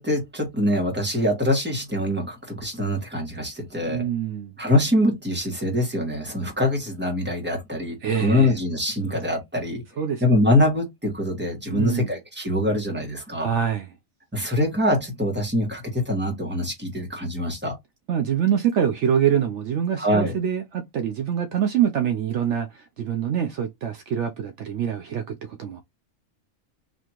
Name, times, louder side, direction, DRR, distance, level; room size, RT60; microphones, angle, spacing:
voice 1, 0.0-4.0 4.6-9.8 10.2-13.5 14.3-17.7 20.0-20.3, left 1 dB, 10° right, 1.4 m, -24 dB
voice 2, 3.9-4.5 8.0-8.6 10.0-10.2 11.7-12.1 13.4-13.9 18.1-25.8, right 8 dB, 70° right, 0.9 m, -25 dB
4.2 x 2.8 x 2.9 m
omnidirectional pair, 1.3 m